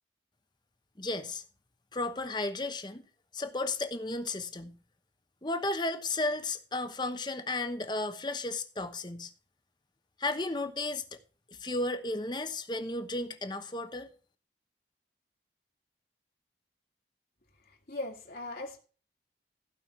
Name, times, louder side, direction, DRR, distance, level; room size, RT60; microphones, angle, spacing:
voice 1, 1.0-1.4 1.9-3.0 3.3-4.8 5.4-9.3 10.2-11.0 11.6-14.1, left 2 dB, 25° left, 1.0 m, -33 dB
voice 2, 17.9-18.8, left 2 dB, 60° left, 2.3 m, -38 dB
15.5 x 5.6 x 5.6 m
head